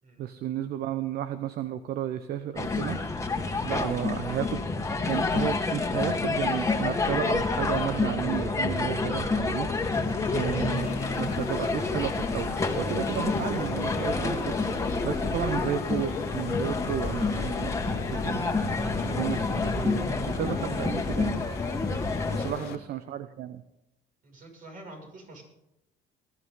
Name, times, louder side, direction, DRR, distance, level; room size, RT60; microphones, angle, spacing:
voice 1, 0.2-3.0 3.6-4.6 5.1-9.7 10.3-14.6 14.8-18.6 19.0-20.0 20.4-21.6 22.3-23.6, right 11 dB, 70° right, 11 dB, 0.9 m, -33 dB
Laughter, 2.5-5.3 6.4-9.0 9.6-12.4 13.0-15.4 16.3-18.4, left 5 dB, 35° left, 1.8 m, -41 dB
sound 1, 2.6-22.5, left 3 dB, 15° left, 1.9 m, -28 dB
sound 2, 10.8-22.8, left 12 dB, 70° left, 0.8 m, -40 dB
voice 2, 22.3-22.8 24.2-25.4, right 2 dB, 50° right, 1 dB, 6.4 m, -47 dB
20.5 x 12.5 x 3.8 m, 0.88 s
cardioid pair, 110°, 17 cm